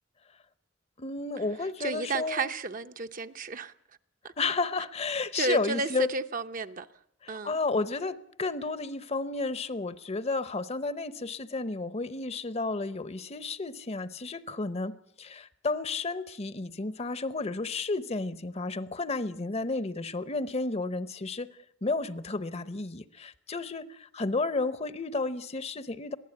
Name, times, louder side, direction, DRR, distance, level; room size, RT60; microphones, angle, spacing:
voice 1, 1.0-2.5 4.4-6.1 7.2-21.5 21.8-26.2, left 3 dB, 35° left, 0.8 m, -32 dB
voice 2, 1.8-3.7 4.2-4.3 5.3-6.9 7.3-7.6, right 3 dB, 45° right, 0.8 m, -32 dB
22.5 x 15.5 x 8.4 m
head